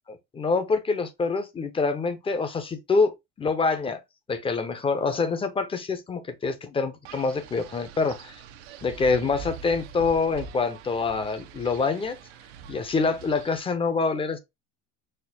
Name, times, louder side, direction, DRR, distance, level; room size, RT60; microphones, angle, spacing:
voice 1, 0.3-4.0 4.3-8.3 8.8-12.2 12.7-14.4, left 4 dB, 15° left, 0.6 m, -26 dB
Wind, 7.0-13.6, right 6 dB, 80° right, 0.7 m, -43 dB
4.3 x 2.0 x 3.9 m
supercardioid pair, 110°, 31 cm